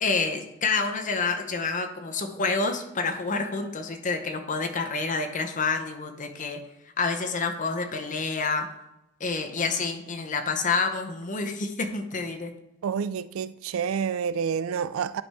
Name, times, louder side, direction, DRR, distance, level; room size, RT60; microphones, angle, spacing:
voice 1, 0.0-6.6 7.0-8.7 9.2-12.5, left 4 dB, 40° left, 0.7 m, -28 dB
voice 2, 12.8-15.2, right 7 dB, 85° right, 0.3 m, -28 dB
10.5 x 3.5 x 4.2 m
head